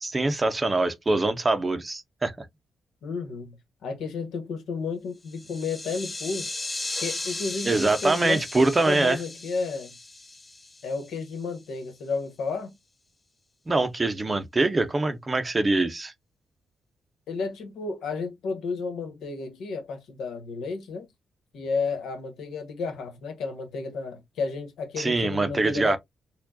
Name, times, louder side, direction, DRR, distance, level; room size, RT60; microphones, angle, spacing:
voice 1, 0.0-2.5 7.6-9.2 13.7-16.1 25.0-26.0, right 2 dB, 20° right, 0.5 m, -24 dB
voice 2, 3.0-3.6 3.8-6.5 7.0-9.9 10.8-12.7 17.3-21.1 21.5-26.0, left 4 dB, 85° left, 1.2 m, -32 dB
sound 1, 5.3-11.3, left 2 dB, 20° left, 0.6 m, -36 dB
4.4 x 2.2 x 2.6 m
cardioid pair, 125°, 0 cm